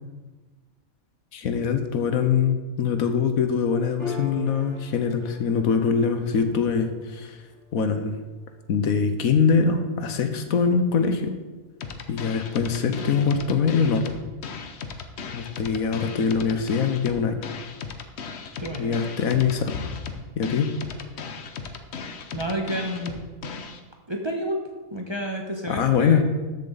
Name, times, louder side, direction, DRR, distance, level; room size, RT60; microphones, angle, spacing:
voice 1, 1.3-7.4 7.7-8.2 8.7-11.4 12.1-14.2 15.3-17.5 18.8-19.9 20.4-20.7 25.7-26.2, left 6 dB, 75° left, 8 dB, 1.3 m, -23 dB
Piano, 4.0-10.9, left 3 dB, 50° right, 2.7 m, -42 dB
sound 1, 11.8-23.8, left 5 dB, 55° left, 1.0 m, -37 dB
voice 2, 18.6-19.0 22.3-23.2 24.1-24.6 24.9-26.2, right 1 dB, 20° right, 1 dB, 1.0 m, -30 dB
13.5 x 7.2 x 4.0 m, 1.3 s
omnidirectional pair, 1.5 m